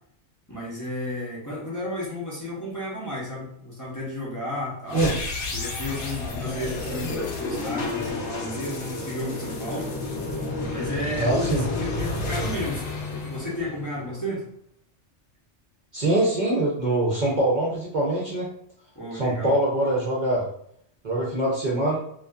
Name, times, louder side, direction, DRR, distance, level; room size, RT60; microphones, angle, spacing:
voice 1, 0.5-5.2 5.5-9.9 10.7-14.4 18.9-19.6, left 1 dB, 20° left, -7 dB, 0.6 m, -33 dB
sound 1, 4.9-14.1, left 2 dB, 75° left, 0.9 m, -31 dB
voice 2, 11.1-11.6 15.9-18.5 19.1-20.5 21.0-22.0, right 1 dB, 50° right, -6 dB, 0.6 m, -23 dB
2.6 x 2.4 x 2.3 m, 0.69 s
omnidirectional pair, 1.2 m